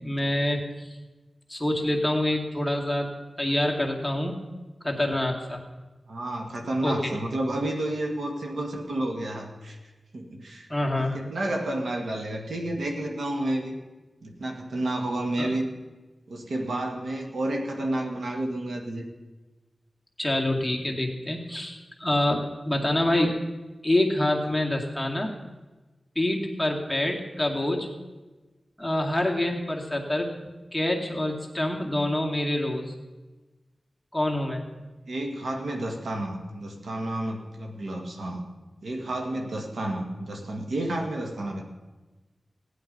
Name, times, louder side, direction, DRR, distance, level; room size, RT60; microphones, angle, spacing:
voice 1, 0.0-0.9 1.5-3.1 3.4-4.5 4.8-5.6 6.8-6.9 10.7-11.2 15.4-15.5 20.2-23.4 23.8-25.3 26.2-27.9 28.8-30.4 30.7-32.9 34.1-34.6, left 1 dB, 5° left, -1 dB, 2.3 m, -26 dB
voice 2, 6.1-9.8 10.1-10.7 11.1-13.8 14.2-15.7 16.3-19.0 35.1-38.4 38.8-41.6, right 1 dB, 90° right, 2 dB, 1.8 m, -30 dB
15.5 x 10.0 x 5.4 m, 1.2 s
wide cardioid pair, 80°, 0 cm